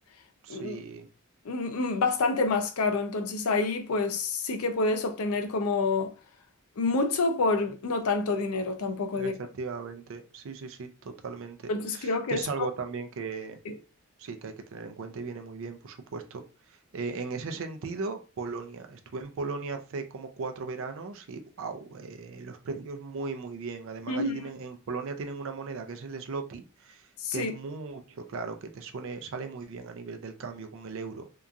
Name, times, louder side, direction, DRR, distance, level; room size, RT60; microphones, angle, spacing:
voice 1, 0.4-1.1 9.1-13.6 14.2-31.2, right 4 dB, 65° right, 0.4 m, -37 dB
voice 2, 1.5-6.1 6.8-9.3 11.7-12.4 13.7-13.8 24.1-24.4 27.2-27.5, left 3 dB, 90° left, 0.5 m, -28 dB
2.8 x 2.3 x 2.4 m
head